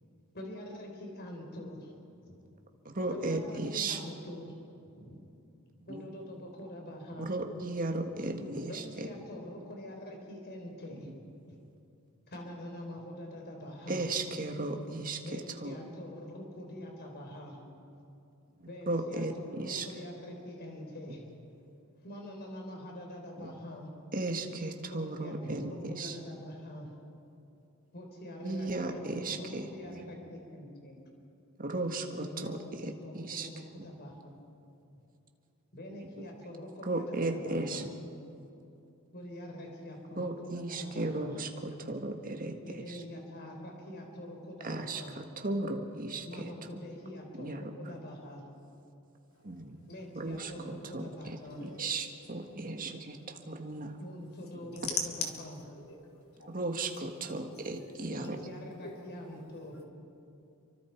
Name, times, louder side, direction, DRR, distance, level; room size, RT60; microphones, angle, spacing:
voice 1, 0.3-2.8 3.1-4.6 4.9-5.2 5.9-7.3 8.7-11.1 11.5-11.6 12.3-14.1 15.2-17.6 18.7-21.3 22.0-23.9 24.9-26.9 27.9-31.0 32.2-34.4 35.7-37.9 39.1-41.4 42.6-45.2 46.3-48.4 49.9-51.6 54.0-55.6 58.1-59.8, left 1 dB, 50° left, 1 dB, 4.0 m, -45 dB
voice 2, 2.8-4.0 5.8-6.1 7.2-9.1 13.9-15.8 18.6-19.9 23.4-23.5 24.1-26.2 28.4-30.1 31.6-33.5 33.8-33.9 36.2-36.3 36.8-37.9 40.1-43.0 44.6-46.8 47.4-47.7 49.4-49.8 50.1-54.0 54.7-54.8 56.5-58.4, right 2 dB, 40° right, 4 dB, 1.8 m, -36 dB
voice 3, 49.3-49.6 50.4-50.9 51.5-52.0 52.5-53.7 54.8-55.0 55.6-56.8 57.5-58.0 58.8-59.1 59.3-59.4 59.7-59.8, left 5 dB, 75° left, 0 dB, 3.7 m, -43 dB
28.5 x 24.5 x 4.6 m, 2.7 s
head